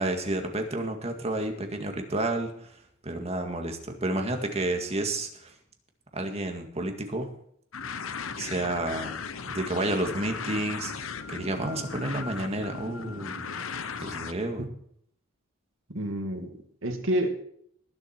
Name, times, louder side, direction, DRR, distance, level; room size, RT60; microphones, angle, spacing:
voice 1, 0.0-2.7 3.0-5.5 6.1-7.3 8.4-9.1 9.5-13.6 14.0-14.6, right 2 dB, 30° right, 4 dB, 2.0 m, -30 dB
sound 1, 7.7-14.3, left 5 dB, 75° left, 0.9 m, -37 dB
voice 2, 15.9-17.4, right 1 dB, 65° right, 3 dB, 2.4 m, -29 dB
20.5 x 7.6 x 4.5 m, 0.66 s
head